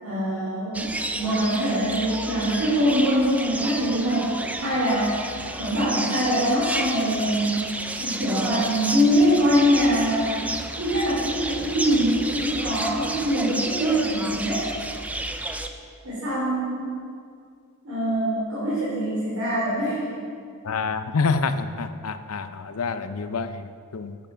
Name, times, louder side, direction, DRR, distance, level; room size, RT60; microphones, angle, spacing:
voice 1, 0.0-5.2 5.6-7.6 8.0-10.5 10.8-14.7 16.0-17.0 17.8-20.2, equal, 80° right, -9 dB, 3.5 m, -23 dB
sound 1, 0.7-15.7, right 2 dB, 5° right, 0.4 m, -31 dB
voice 2, 20.6-24.2, left 4 dB, 90° left, 11 dB, 0.6 m, -27 dB
10.5 x 8.2 x 6.2 m, 2.3 s
head